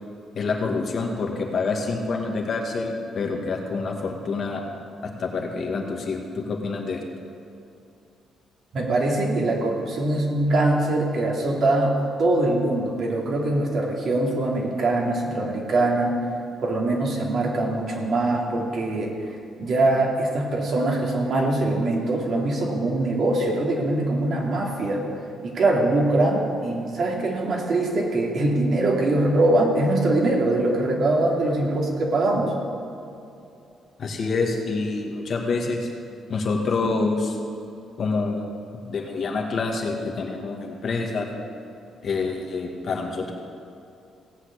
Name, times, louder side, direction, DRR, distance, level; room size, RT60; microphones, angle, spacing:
voice 1, 0.3-4.6 5.0-7.0 34.0-35.9 36.3-37.4 38.0-38.5 38.9-41.3 42.0-43.3, left 4 dB, 55° left, 1 dB, 2.0 m, -27 dB
voice 2, 8.7-16.2 16.6-19.1 19.6-25.1 25.4-32.5, right 2 dB, 55° right, -1 dB, 2.8 m, -23 dB
17.0 x 5.8 x 8.4 m, 2.7 s
cardioid pair, 90°, 0 cm